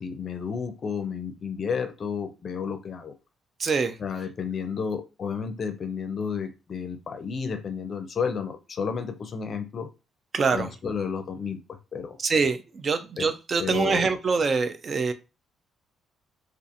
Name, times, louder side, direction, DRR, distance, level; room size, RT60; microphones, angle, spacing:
voice 1, 0.0-3.1 4.0-9.9 10.5-12.2 13.2-13.3 13.6-14.1, left 6 dB, 50° left, 8 dB, 0.4 m, -32 dB
voice 2, 3.6-3.9 10.3-10.7 12.2-15.1, right 4 dB, 45° right, 10 dB, 0.3 m, -24 dB
2.6 x 2.4 x 2.5 m, 0.29 s
cardioid pair, 90°, 0 cm